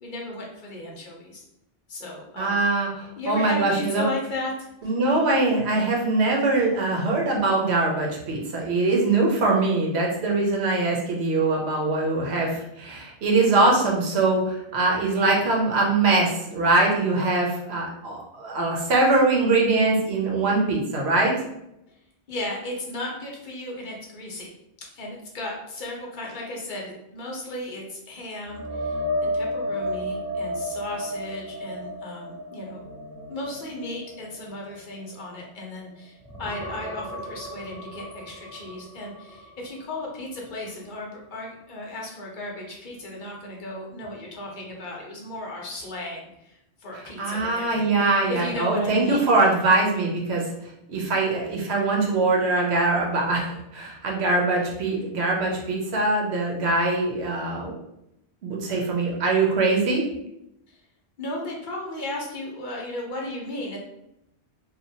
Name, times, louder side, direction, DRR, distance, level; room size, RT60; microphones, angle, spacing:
voice 1, 0.0-1.4 1.9-2.6 3.2-4.9 22.3-24.5 24.9-32.8 33.3-49.3 60.7-60.8 61.2-63.8, left 1 dB, 50° left, -2 dB, 0.8 m, -35 dB
voice 2, 2.4-4.1 4.8-21.3 47.2-50.5 50.9-57.8 58.4-60.1, right 3 dB, 70° right, -1 dB, 1.0 m, -22 dB
sound 1, 28.4-35.9 36.2-40.1 40.5-40.7 44.0-44.1, left 1 dB, 5° left, 0.6 m, -33 dB
2.8 x 2.3 x 2.7 m, 0.82 s
omnidirectional pair, 1.1 m